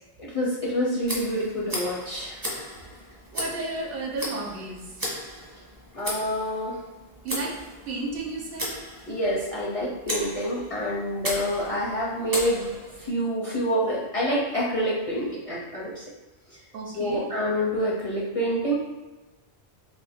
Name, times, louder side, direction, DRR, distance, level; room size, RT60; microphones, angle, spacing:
voice 1, 0.2-2.4 5.9-6.8 9.1-12.7 13.0-16.0 16.9-18.7, equal, 45° left, -6 dB, 0.5 m, -27 dB
Tick, 1.0-13.1, equal, 25° right, 0.5 m, -36 dB
voice 2, 3.3-4.8 7.2-7.6 7.9-8.7 16.7-17.2, right 3 dB, 65° right, -1 dB, 0.8 m, -32 dB
2.5 x 2.5 x 3.5 m, 1.1 s
omnidirectional pair, 1.1 m